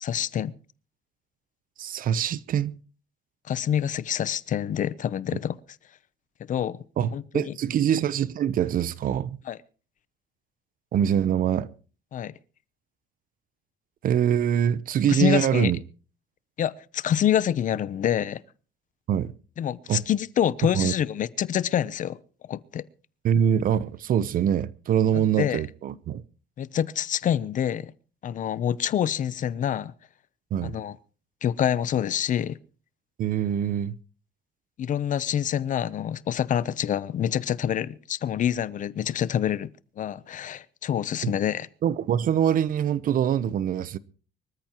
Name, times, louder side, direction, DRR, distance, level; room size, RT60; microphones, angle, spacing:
voice 1, 0.0-0.6 3.5-5.6 6.5-6.8 7.1-7.6 9.5-9.6 12.1-12.3 15.1-15.7 16.6-18.4 19.6-22.2 22.5-22.8 25.1-25.6 26.6-27.9 28.2-29.9 30.6-30.9 31.4-32.6 34.8-39.7 40.0-41.7, left 10 dB, 50° left, 0.8 m, -26 dB
voice 2, 1.8-2.7 7.0-9.4 10.9-11.7 14.0-15.8 19.1-19.3 19.9-20.0 20.7-20.9 23.2-26.2 30.5-30.8 33.2-33.9 41.2-41.3 41.8-44.0, right 9 dB, 55° right, 0.8 m, -24 dB
25.0 x 13.5 x 3.1 m
cardioid pair, 110°, 17 cm